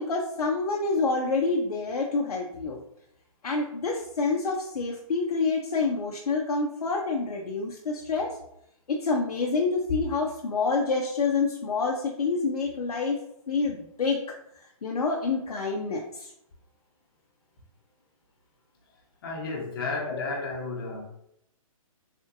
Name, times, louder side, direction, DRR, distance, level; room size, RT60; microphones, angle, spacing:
voice 1, 0.0-2.8 3.4-8.3 8.9-13.2 13.5-14.2 14.8-16.3, left 4 dB, 85° left, 0.6 m, -27 dB
voice 2, 19.2-21.0, left 3 dB, 40° left, 0.9 m, -32 dB
3.4 x 2.5 x 2.7 m
hypercardioid pair, 160°, 19 cm